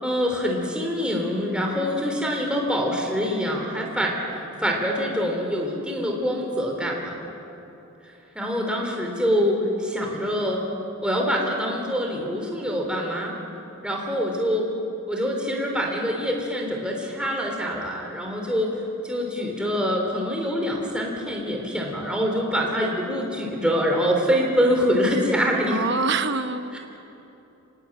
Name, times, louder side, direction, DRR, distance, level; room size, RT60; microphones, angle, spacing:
voice 1, 0.0-7.2 8.0-10.6 11.0-13.3 13.8-14.7 15.1-18.7 19.0-25.9 26.7-26.8, equal, 5° right, 0 dB, 3.4 m, -25 dB
voice 2, 9.3-9.6 25.7-26.8, right 4 dB, 50° right, 10 dB, 1.1 m, -26 dB
25.5 x 20.5 x 8.8 m, 3.0 s
head